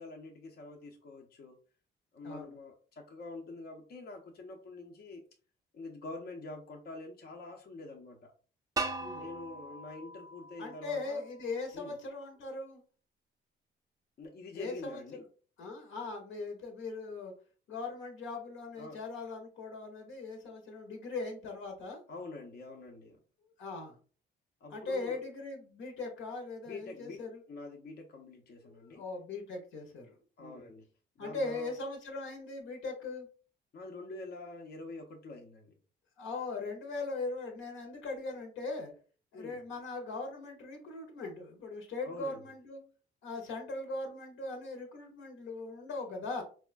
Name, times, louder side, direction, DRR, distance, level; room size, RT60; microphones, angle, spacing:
voice 1, 0.0-1.6 2.1-5.2 5.7-8.3 9.2-11.2 11.7-11.9 14.2-15.2 18.8-19.0 22.1-23.2 24.6-25.2 26.7-27.2 27.5-29.0 30.4-30.8 31.2-31.7 33.7-35.7 39.3-39.6 42.0-42.4, left 2 dB, 50° left, 2 dB, 0.6 m, -46 dB
voice 2, 2.2-2.5 9.0-9.3 10.6-12.8 14.5-15.2 15.6-17.3 17.7-22.0 23.6-24.0 24.7-27.4 28.6-30.7 31.2-33.3 36.2-38.9 39.3-42.8 43.2-46.4, left 3 dB, 80° left, 2 dB, 0.8 m, -40 dB
sound 1, 8.8-11.7, right 3 dB, 20° right, 0.4 m, -40 dB
4.1 x 2.2 x 2.4 m, 0.38 s
cardioid pair, 90°, 20 cm